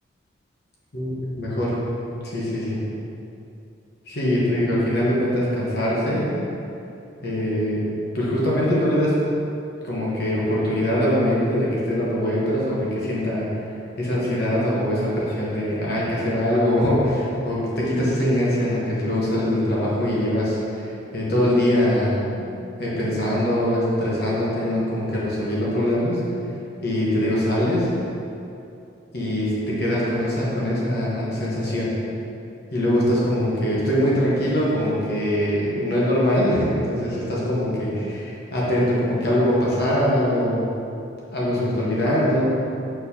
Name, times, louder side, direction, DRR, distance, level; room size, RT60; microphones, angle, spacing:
voice 1, 0.9-1.8 2.2-2.8 4.1-6.3 7.2-7.9 8.1-9.2 9.8-13.5 14.0-22.5 22.8-26.2 26.8-27.9 29.1-31.9 32.7-40.7 41.3-42.4, equal, 50° left, -6 dB, 1.0 m, -22 dB
4.4 x 4.4 x 2.7 m, 2.7 s
head